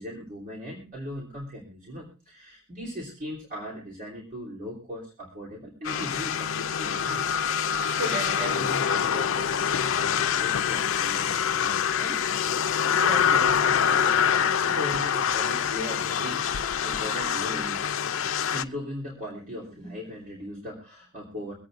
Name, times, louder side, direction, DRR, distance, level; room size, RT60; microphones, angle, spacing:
voice 1, 0.0-7.5 7.7-12.2 12.9-17.8 18.5-21.5, equal, 40° right, -4 dB, 3.3 m, -38 dB
sound 1, 5.8-18.6, left 7 dB, 90° left, 0.5 m, -25 dB
24.5 x 8.6 x 2.5 m, 0.34 s
head